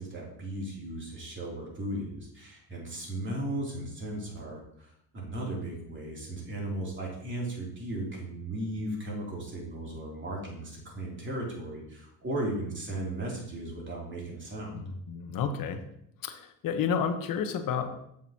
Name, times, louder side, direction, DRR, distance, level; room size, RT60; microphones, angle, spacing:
voice 1, 0.0-14.8, right 1 dB, 25° right, -3 dB, 2.9 m, -36 dB
voice 2, 14.7-15.8 16.2-18.1, left 7 dB, 50° left, 8 dB, 1.0 m, -31 dB
7.1 x 6.3 x 2.8 m, 0.74 s
supercardioid pair, 95°, 44 cm